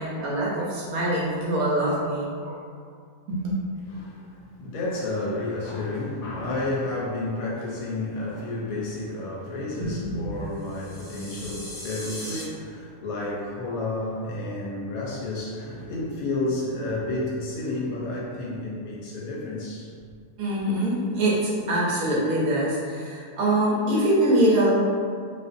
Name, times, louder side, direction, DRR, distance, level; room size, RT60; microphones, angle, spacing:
voice 1, 0.0-2.6 3.3-3.6 9.8-10.3 20.4-24.7, right 1 dB, 75° right, -5 dB, 1.0 m, -24 dB
voice 2, 3.9-19.9 20.5-20.6, left 2 dB, 70° left, -4 dB, 0.9 m, -31 dB
sound 1, 10.6-12.4, left 1 dB, 30° right, 0.5 m, -39 dB
2.5 x 2.4 x 2.4 m, 2.1 s
omnidirectional pair, 1.6 m